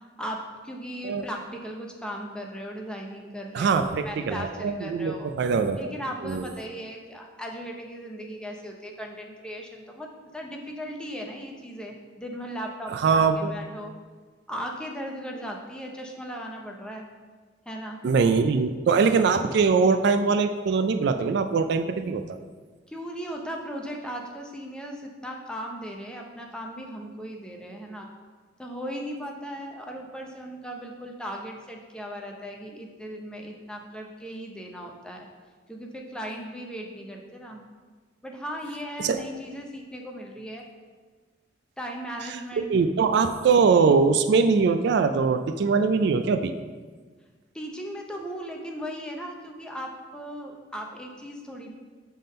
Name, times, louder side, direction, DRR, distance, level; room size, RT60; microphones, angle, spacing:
voice 1, 0.2-5.3 5.8-13.9 14.5-17.1 17.7-18.0 22.9-28.1 28.6-35.3 35.7-37.6 38.2-40.6 41.8-42.7 47.5-51.7, equal, 5° left, 0 dB, 0.6 m, -37 dB
voice 2, 3.5-5.9 6.2-6.5 12.9-13.5 18.0-22.4 39.0-39.2 42.7-46.5, right 5 dB, 60° right, 8 dB, 0.3 m, -22 dB
5.8 x 3.6 x 5.2 m, 1.4 s
head